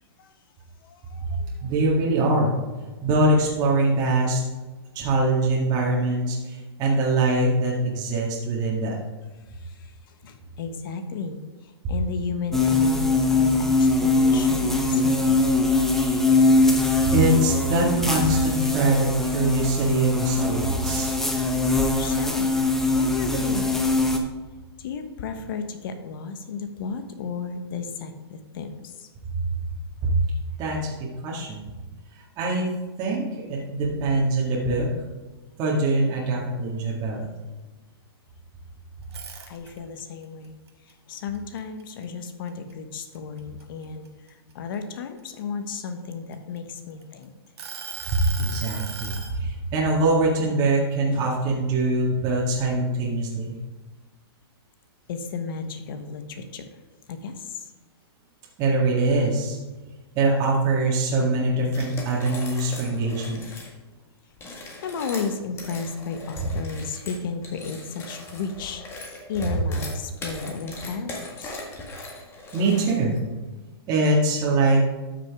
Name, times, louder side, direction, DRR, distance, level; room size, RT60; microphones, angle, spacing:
voice 1, 0.8-1.6 9.5-15.4 21.7-22.5 22.9-24.1 24.8-29.1 37.2-37.3 39.5-40.6 40.8-47.3 51.1-51.2 55.1-56.7 57.1-57.7 64.8-71.6, left 5 dB, 55° left, 8 dB, 1.2 m, -34 dB
voice 2, 1.6-2.6 3.0-4.4 4.9-9.0 17.0-21.2 30.0-30.1 30.6-31.6 32.1-32.7 33.0-34.9 35.6-37.3 48.1-53.5 58.6-59.6 60.2-63.4 72.5-73.2 73.9-74.8, right 2 dB, 30° right, -4 dB, 1.9 m, -23 dB
sound 1, 12.5-24.2, left 2 dB, 5° left, 0.8 m, -22 dB
sound 2, 39.0-40.0 40.4-42.3 42.7-42.9 43.4-45.2 45.9-47.0 47.6-49.3, right 6 dB, 80° right, 1.7 m, -38 dB
sound 3, 61.7-63.7 64.3-73.2, left 2 dB, 20° left, 1.7 m, -39 dB
12.5 x 6.3 x 3.6 m, 1.2 s
hypercardioid pair, 140°, 14 cm